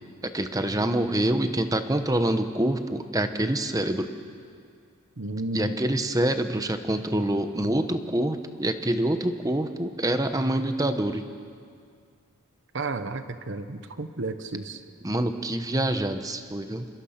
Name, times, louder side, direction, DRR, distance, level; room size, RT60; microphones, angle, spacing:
voice 1, 0.2-4.1 5.5-11.3 15.0-16.9, right 1 dB, 15° right, 8 dB, 1.0 m, -26 dB
voice 2, 5.2-5.7 12.7-14.8, right 2 dB, 55° right, 10 dB, 1.1 m, -32 dB
27.0 x 22.0 x 5.8 m, 2.2 s
head